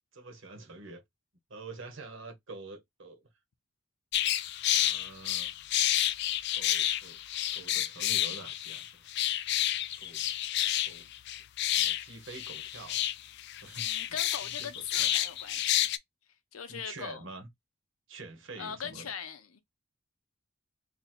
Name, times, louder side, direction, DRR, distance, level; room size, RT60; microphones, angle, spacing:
voice 1, 0.1-1.0 1.5-3.3 4.8-5.5 6.5-7.2 7.5-9.1 10.0-10.3 10.8-11.1 11.8-13.0 13.6-14.2 14.4-15.1 16.7-17.5 18.1-19.1, right 3 dB, 65° right, 1.1 m, -47 dB
sound 1, 4.1-16.0, left 12 dB, 55° left, 0.3 m, -30 dB
voice 2, 13.8-15.9 16.5-17.2 18.6-19.6, left 7 dB, 90° left, 0.7 m, -40 dB
2.9 x 2.7 x 4.2 m
head